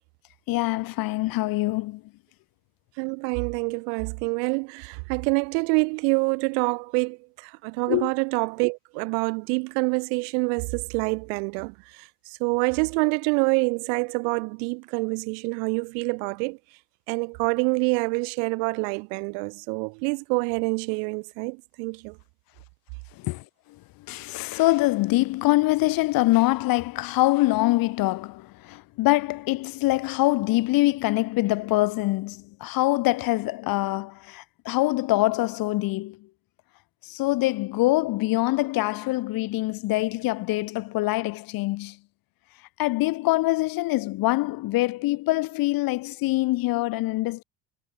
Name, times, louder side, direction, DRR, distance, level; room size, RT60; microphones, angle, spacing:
voice 1, 0.5-2.0 7.9-8.1 23.1-36.3 37.0-42.0 42.8-47.4, left 19 dB, 45° left, 0.5 m, -24 dB
voice 2, 3.0-16.6 17.1-22.2, right 40 dB or more, 75° right, 1.0 m, -26 dB
hypercardioid pair, 80°, 48 cm